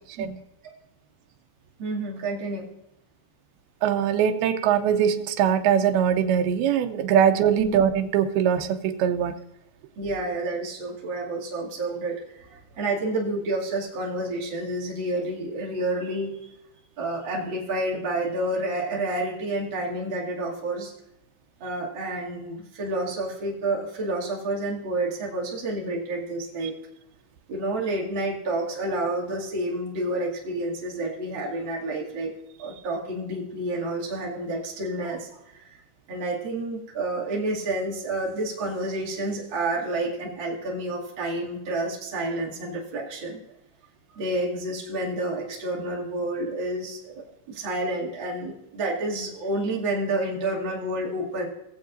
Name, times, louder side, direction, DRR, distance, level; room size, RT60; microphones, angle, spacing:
voice 1, 1.8-2.7 7.6-7.7 10.0-16.5 17.0-20.9 21.6-26.7 27.5-32.3 32.6-35.7 36.1-43.4 44.1-47.0 47.5-51.5, right 2 dB, 35° right, -4 dB, 2.6 m, -29 dB
voice 2, 3.8-9.4, right 8 dB, 85° right, 7 dB, 2.6 m, -22 dB
19.5 x 7.5 x 2.6 m, 0.85 s
omnidirectional pair, 4.5 m